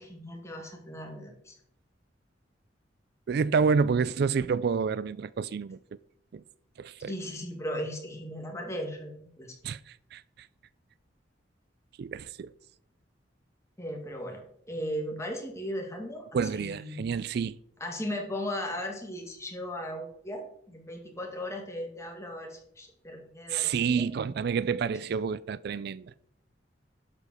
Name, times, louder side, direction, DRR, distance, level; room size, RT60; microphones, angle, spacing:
voice 1, 0.0-1.6 7.1-9.6 13.8-17.0 17.8-24.1, equal, 15° left, 2.2 m, -37 dB
voice 2, 3.3-5.8 6.3-6.4 6.8-7.1 9.6-10.5 12.0-12.5 16.3-17.6 23.5-26.1, right 5 dB, 60° right, 0.3 m, -29 dB
12.0 x 5.2 x 6.4 m
head